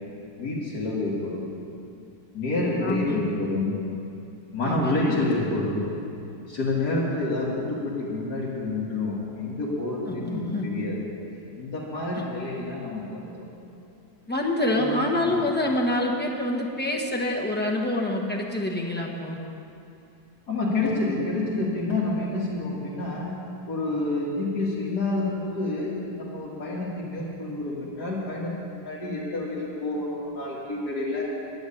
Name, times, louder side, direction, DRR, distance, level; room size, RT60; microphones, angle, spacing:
voice 1, 0.4-1.5 2.3-3.8 4.5-5.9 6.5-11.0 11.6-13.4 14.7-15.4 20.5-23.3 23.7-31.2, left 2 dB, 60° left, -8 dB, 2.4 m, -28 dB
voice 2, 2.8-3.3 4.6-5.2 10.1-10.9 14.3-19.4, left 1 dB, 5° left, -2 dB, 1.0 m, -27 dB
10.5 x 8.1 x 10.0 m, 2.7 s
omnidirectional pair, 1.9 m